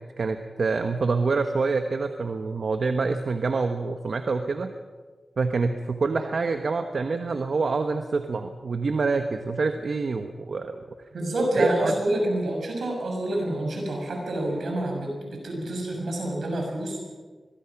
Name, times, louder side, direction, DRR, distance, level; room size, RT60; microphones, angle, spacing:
voice 1, 0.0-4.7 5.4-10.8 11.6-11.9, right 4 dB, 70° right, 6 dB, 1.2 m, -26 dB
voice 2, 11.1-17.0, right 1 dB, 90° right, 1 dB, 6.8 m, -27 dB
24.0 x 22.0 x 6.0 m, 1.4 s
wide cardioid pair, 65°, 0 cm